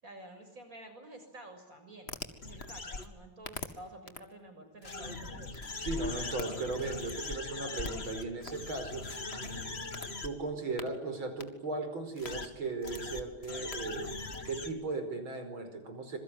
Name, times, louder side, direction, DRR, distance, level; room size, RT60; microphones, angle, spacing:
voice 1, 0.0-5.6, right 1 dB, 40° right, 6 dB, 7.2 m, -50 dB
sound 1, 2.1-3.0 3.4-3.6 4.1-4.2 4.8-10.3 10.8-10.9 11.4-11.5 12.2-12.5 12.8-14.7, left 3 dB, 30° left, 2.3 m, -40 dB
voice 2, 5.8-9.7 10.2-14.1 14.5-16.2, right 3 dB, 70° right, 8 dB, 5.9 m, -37 dB
27.0 x 22.5 x 9.8 m, 1.0 s
omnidirectional pair, 2.3 m